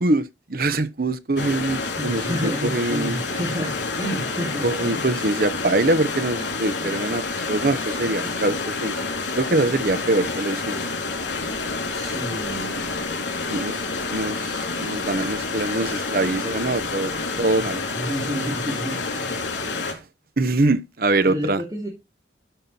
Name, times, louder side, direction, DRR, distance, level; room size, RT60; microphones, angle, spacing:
voice 1, 0.0-3.2 4.6-7.2 7.5-9.0 9.4-10.8 13.5-13.8 14.1-17.1 17.4-17.8 19.9-20.0 20.4-21.6, right 2 dB, 50° right, 0.9 m, -23 dB
sound 1, 1.4-19.9, left 3 dB, 85° left, 3.5 m, -28 dB
voice 2, 2.0-5.1 11.9-13.0 17.6-19.4 21.2-21.9, equal, 20° right, 2.6 m, -30 dB
12.5 x 5.7 x 4.3 m
head